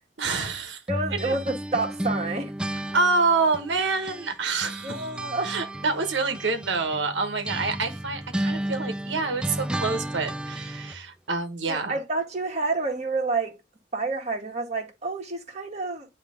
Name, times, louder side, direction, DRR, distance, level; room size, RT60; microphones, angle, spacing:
voice 1, 0.2-0.8 1.1-1.4 2.9-5.1 5.4-12.0, right 4 dB, 85° right, 1.3 m, -27 dB
sound 1, 0.9-4.3 4.6-11.0, right 1 dB, 5° right, 0.3 m, -33 dB
voice 2, 0.9-2.5 4.8-5.5 11.7-13.6 13.9-16.1, right 3 dB, 40° right, 1.7 m, -29 dB
9.5 x 3.2 x 5.0 m
head